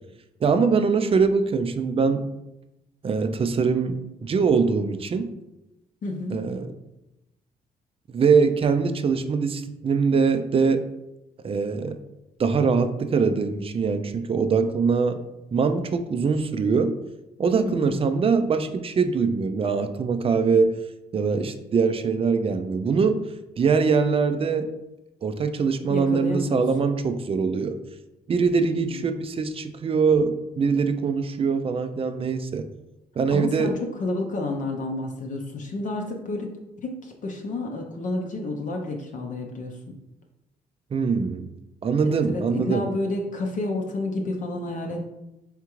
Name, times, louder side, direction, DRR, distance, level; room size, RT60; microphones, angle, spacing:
voice 1, 0.4-2.2 3.0-5.3 6.3-6.7 8.1-10.8 11.4-12.0 12.4-15.2 15.5-17.0 17.4-20.8 21.1-23.2 23.6-24.7 25.2-27.8 28.3-32.7 33.2-33.7 40.9-41.5 41.8-42.9, right 5 dB, 35° right, 9 dB, 0.4 m, -23 dB
voice 2, 6.0-6.5 17.6-18.0 25.9-26.6 28.6-29.0 33.3-36.5 36.8-40.0 42.0-45.0, left 2 dB, 50° left, 1 dB, 0.6 m, -30 dB
3.6 x 3.5 x 3.0 m, 0.92 s
cardioid pair, 80°, 17 cm